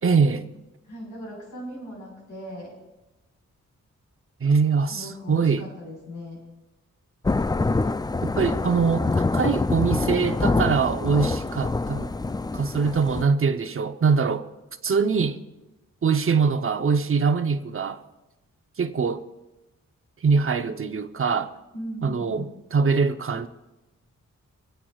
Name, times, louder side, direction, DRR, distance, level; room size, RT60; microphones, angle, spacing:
voice 1, 0.0-0.5 4.4-5.7 8.2-12.1 12.5-14.5 14.8-15.4 16.0-18.0 18.8-19.2 20.2-21.5 22.0-23.5, right 5 dB, 45° right, 0.8 m, -23 dB
voice 2, 0.9-2.7 4.9-6.4 21.7-22.5, equal, 75° left, 4.8 m, -38 dB
Thunder / Rain, 7.2-13.2, left 3 dB, 15° left, 0.3 m, -25 dB
25.0 x 8.7 x 2.4 m
cardioid pair, 60°, 31 cm